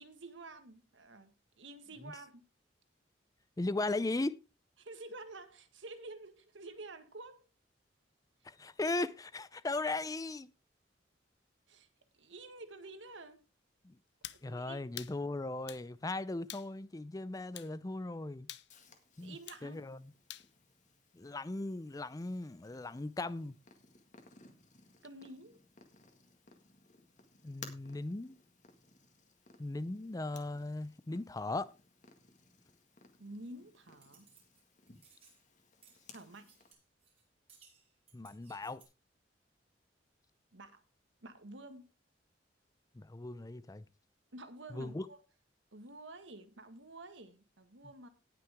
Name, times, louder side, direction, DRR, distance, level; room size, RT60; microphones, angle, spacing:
voice 1, 0.0-2.4 4.8-7.5 11.7-11.9 12.2-13.4 14.3-14.8 19.2-19.8 25.0-25.6 33.2-34.3 36.1-36.5 40.5-40.8 41.2-41.9 44.3-45.2 45.7-48.1, right 2 dB, 90° right, 1.7 m, -50 dB
voice 2, 3.6-4.4 8.4-10.5 13.8-14.0 14.4-18.5 19.2-20.1 21.1-23.5 27.4-28.4 29.6-31.7 38.1-38.8 42.9-43.8 44.7-45.1, left 2 dB, 20° left, 0.5 m, -38 dB
sound 1, 14.2-14.4 15.0-15.2 15.7-15.9 16.5-16.7 17.6-17.7 18.5-18.7 19.5-19.7 20.3-20.5, left 13 dB, 65° left, 0.6 m, -46 dB
Purr, 18.7-36.7, left 4 dB, 40° left, 1.8 m, -60 dB
sound 2, 34.0-34.6 34.9-35.4 35.8-37.2 37.5-38.8, right 6 dB, 35° right, 5.4 m, -64 dB
18.5 x 6.1 x 3.5 m
head